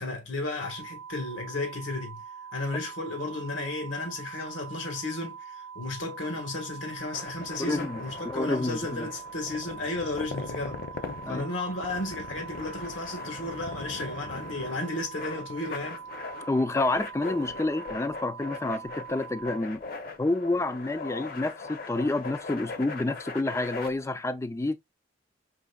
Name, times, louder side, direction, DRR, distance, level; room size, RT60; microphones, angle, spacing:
voice 1, 0.0-2.2 2.5-10.8 11.3-16.0, left 2 dB, 90° left, 1.5 m, -34 dB
sound 1, 0.6-19.6, right 7 dB, 75° right, 0.4 m, -43 dB
sound 2, 6.9-23.9, left 3 dB, 50° left, 0.7 m, -40 dB
voice 2, 7.6-9.1 11.3-11.5 16.5-19.8 20.2-24.8, left 2 dB, 15° left, 0.3 m, -29 dB
5.2 x 3.3 x 2.3 m
head